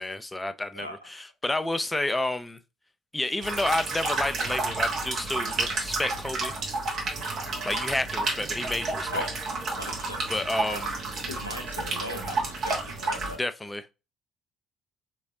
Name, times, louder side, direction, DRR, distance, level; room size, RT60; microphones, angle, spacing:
voice 1, 0.0-2.6 3.1-6.5 7.6-9.2 10.3-11.0 13.4-13.8, left 2 dB, 15° left, 0.5 m, -30 dB
sound 1, 3.4-13.3, right 3 dB, 50° right, 1.2 m, -31 dB
voice 2, 9.1-9.5 9.8-10.8 11.3-13.4, left 1 dB, 90° left, 0.6 m, -38 dB
3.9 x 3.1 x 2.7 m
figure-of-eight pair, 50°, 0 cm